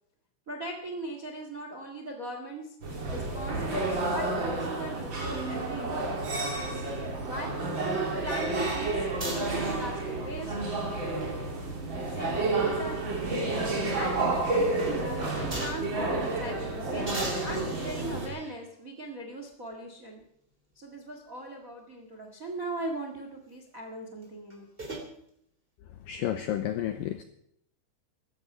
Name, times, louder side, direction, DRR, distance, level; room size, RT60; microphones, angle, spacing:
voice 1, 0.5-2.7 3.1-6.4 7.2-7.6 8.2-10.7 12.1-13.0 13.9-17.1 17.4-20.2 20.7-24.7, right 1 dB, 50° right, 3 dB, 0.9 m, -39 dB
sound 1, 2.8-18.3, right 2 dB, 30° right, 3.1 m, -30 dB
sound 2, 9.2-10.2 11.9-13.5 13.9-14.0 15.5-16.0 17.1-18.6 19.5-19.6 24.2-25.1, right 1 dB, 15° right, 2.8 m, -40 dB
voice 2, 26.1-27.2, left 11 dB, 85° left, 9 dB, 2.0 m, -31 dB
15.5 x 13.5 x 5.7 m, 0.71 s
omnidirectional pair, 5.0 m